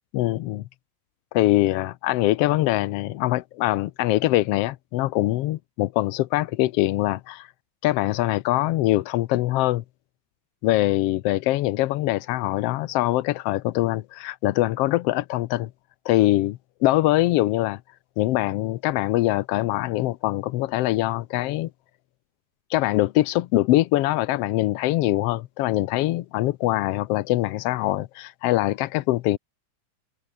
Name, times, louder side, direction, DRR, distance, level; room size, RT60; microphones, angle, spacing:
voice 1, 0.1-0.6 1.3-7.5 7.8-9.8 10.6-15.7 16.1-17.8 18.2-21.7 22.7-29.4, left 16 dB, 90° left, 1.3 m, -23 dB
omnidirectional pair, 3.6 m